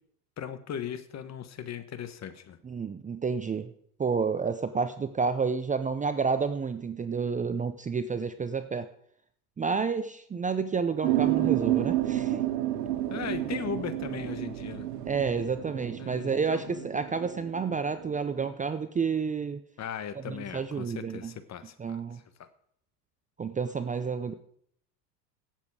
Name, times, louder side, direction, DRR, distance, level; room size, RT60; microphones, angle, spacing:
voice 1, 0.4-2.6 13.1-14.9 16.0-16.9 19.8-22.5, left 8 dB, 35° left, 11 dB, 1.3 m, -38 dB
voice 2, 2.6-3.7 4.0-8.9 9.6-12.4 15.1-19.6 20.3-21.3 21.8-22.2 23.4-24.3, right 5 dB, 15° right, 10 dB, 0.7 m, -30 dB
sound 1, 11.0-18.5, right 14 dB, 80° right, 1.5 m, -30 dB
17.0 x 7.4 x 4.9 m, 0.66 s
hypercardioid pair, 90°, 47 cm